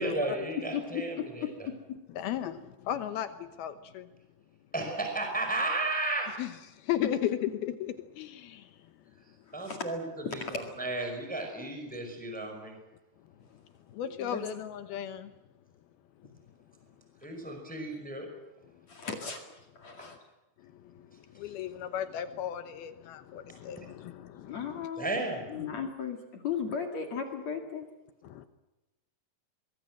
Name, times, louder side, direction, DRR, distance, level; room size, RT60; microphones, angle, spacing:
voice 1, 0.0-1.4 4.7-6.3 9.5-12.8 17.2-18.3 23.7-23.9 25.0-25.4, right 2 dB, ahead, 4.9 m, -33 dB
voice 2, 2.1-4.1 6.4-8.9 13.9-15.3 19.9-20.2 20.6-24.9 25.6-25.9 28.2-28.5, left 10 dB, 75° left, 2.8 m, -36 dB
voice 3, 14.0-14.4 18.9-20.2 24.4-25.2 25.5-27.8, left 6 dB, 50° left, 3.0 m, -36 dB
24.0 x 22.0 x 7.8 m
omnidirectional pair, 4.7 m